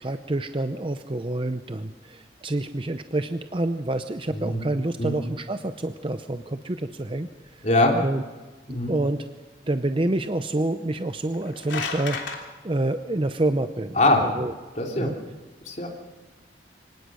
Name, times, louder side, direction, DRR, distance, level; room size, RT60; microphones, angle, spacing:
voice 1, 0.0-7.3 7.9-8.2 8.7-9.2 9.7-14.5 15.0-15.1, right 1 dB, 30° right, 9 dB, 0.6 m, -28 dB
voice 2, 7.6-8.0 8.7-8.9 14.0-14.3 14.8-15.1 15.6-15.9, left 2 dB, 40° left, 0 dB, 3.3 m, -22 dB
sound 1, 11.2-12.4, left 4 dB, 80° left, 3.2 m, -32 dB
24.5 x 18.5 x 6.4 m, 1.3 s
head